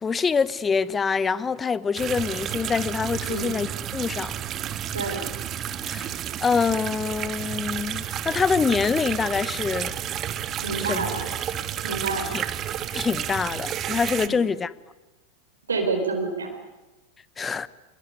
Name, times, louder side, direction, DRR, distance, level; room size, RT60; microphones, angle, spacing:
voice 1, 0.0-3.7 3.9-4.3 5.8-6.1 6.4-9.9 10.9-11.0 12.3-12.4 12.9-14.7 17.4-17.7, left 5 dB, 20° left, 1.0 m, -25 dB
sound 1, 2.0-14.3, right 10 dB, 35° right, 1.4 m, -31 dB
voice 2, 4.9-5.3 10.6-11.3 11.8-12.4 14.2-14.4 15.7-16.5, right 4 dB, 85° right, 4.3 m, -28 dB
24.5 x 21.5 x 9.7 m
hypercardioid pair, 90°, 0 cm